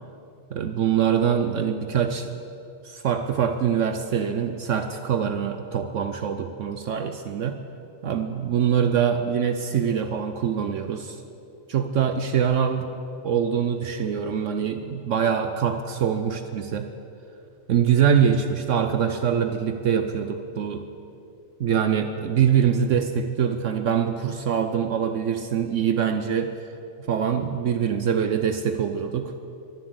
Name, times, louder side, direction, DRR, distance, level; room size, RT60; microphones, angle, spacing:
voice 1, 0.5-2.3 2.8-7.6 8.0-11.2 11.7-12.9 13.2-16.9 17.7-20.8 21.6-26.6 27.1-29.3, right 8 dB, 65° right, 8 dB, 1.0 m, -24 dB
22.5 x 7.6 x 8.0 m, 2.7 s
omnidirectional pair, 1.4 m